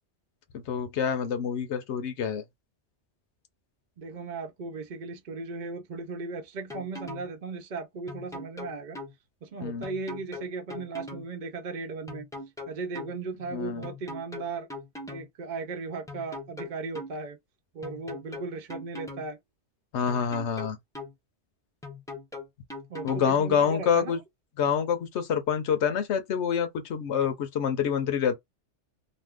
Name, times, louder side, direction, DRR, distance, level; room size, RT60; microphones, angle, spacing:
voice 1, 0.5-2.4 9.6-9.9 13.5-13.9 19.9-20.8 23.0-24.2 24.6-28.4, left 7 dB, 70° left, 1.0 m, -27 dB
voice 2, 4.0-9.0 9.4-12.3 12.7-14.7 15.1-17.4 17.7-19.4 22.9-24.2, right 4 dB, 50° right, 0.7 m, -36 dB
sound 1, 6.7-7.3 8.1-9.1 9.8-11.3 12.1-13.1 13.8-15.3 16.1-17.1 17.8-19.3 20.1-21.1 21.8-23.3, left 2 dB, 5° left, 0.5 m, -40 dB
2.6 x 2.3 x 3.4 m
omnidirectional pair, 1.2 m